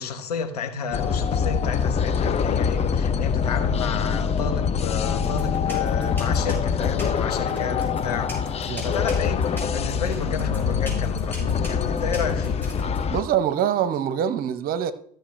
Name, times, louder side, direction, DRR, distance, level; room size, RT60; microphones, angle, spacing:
voice 1, 0.0-12.7, left 5 dB, 80° left, 1.0 m, -31 dB
sound 1, 0.9-13.2, left 6 dB, 30° left, 0.7 m, -24 dB
sound 2, 5.2-13.0, left 1 dB, 10° left, 4.7 m, -38 dB
voice 2, 13.1-14.9, right 9 dB, 50° right, 0.9 m, -24 dB
14.0 x 6.5 x 3.2 m
figure-of-eight pair, 65°, 20 cm